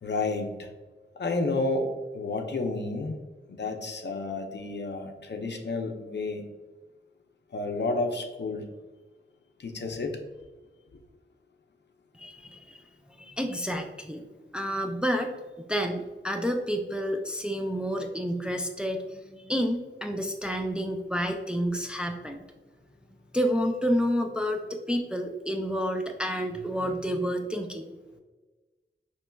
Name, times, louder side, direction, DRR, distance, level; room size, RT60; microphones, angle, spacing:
voice 1, 0.0-0.7 1.2-1.9 2.1-3.2 3.5-6.4 7.5-8.7 9.6-10.2, left 3 dB, 60° left, 4 dB, 0.5 m, -30 dB
voice 2, 12.1-12.8 13.2-14.3 14.5-15.3 15.7-22.4 23.3-27.9, equal, 5° right, 4 dB, 0.4 m, -29 dB
4.4 x 3.0 x 2.2 m, 1.2 s
wide cardioid pair, 55°, 20 cm